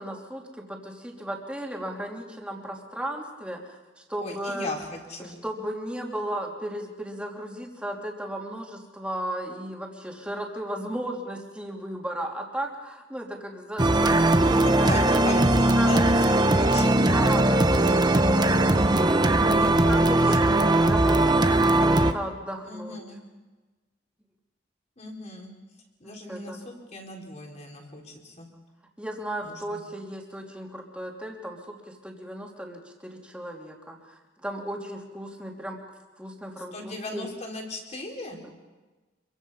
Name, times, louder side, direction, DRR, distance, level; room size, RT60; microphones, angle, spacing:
voice 1, 0.0-4.7 5.2-16.3 17.1-23.0 26.0-26.6 29.0-35.8 36.2-37.3 38.4-38.5, right 1 dB, 5° right, 0 dB, 3.0 m, -35 dB
voice 2, 4.2-5.4 14.8-17.4 19.1-20.5 22.6-23.2 25.0-25.5 26.0-28.5 29.4-29.8 36.7-38.4, left 2 dB, 40° left, 0 dB, 4.2 m, -37 dB
sound 1, 13.8-22.1, right 2 dB, 25° right, 0.9 m, -20 dB
26.5 x 23.5 x 5.6 m, 1.2 s
head